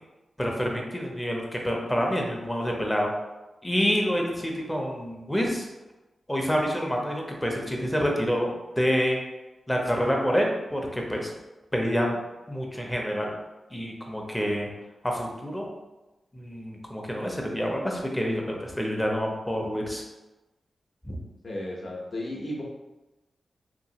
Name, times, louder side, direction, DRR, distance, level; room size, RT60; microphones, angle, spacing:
voice 1, 0.4-3.1 3.6-5.7 6.3-9.2 9.7-11.3 11.7-12.2 12.5-13.3 13.7-14.7 15.0-15.7 16.3-20.0 21.1-21.2, equal, 10° left, 0 dB, 0.6 m, -27 dB
voice 2, 21.4-22.6, left 1 dB, 50° left, -3 dB, 0.8 m, -34 dB
2.9 x 2.7 x 2.8 m, 1.1 s
wide cardioid pair, 85°, 0 cm